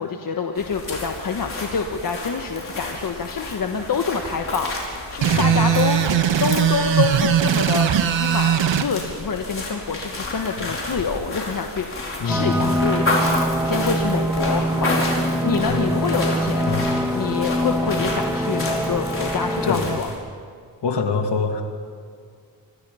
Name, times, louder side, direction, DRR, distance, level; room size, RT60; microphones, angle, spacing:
voice 1, 0.0-20.1, left 5 dB, 50° left, 3 dB, 1.4 m, -27 dB
sound 1, 0.6-20.2, left 2 dB, 30° left, 5.1 m, -31 dB
sound 2, 5.2-8.9, right 9 dB, 85° right, 1.4 m, -19 dB
voice 2, 5.3-5.7 12.2-12.8 15.7-15.9 16.7-16.9 19.6-20.0 20.8-21.6, left 5 dB, 65° left, 4 dB, 2.7 m, -25 dB
sound 3, 12.3-20.0, equal, 5° right, 1.5 m, -24 dB
27.0 x 26.0 x 5.7 m, 2.1 s
wide cardioid pair, 170°, 44 cm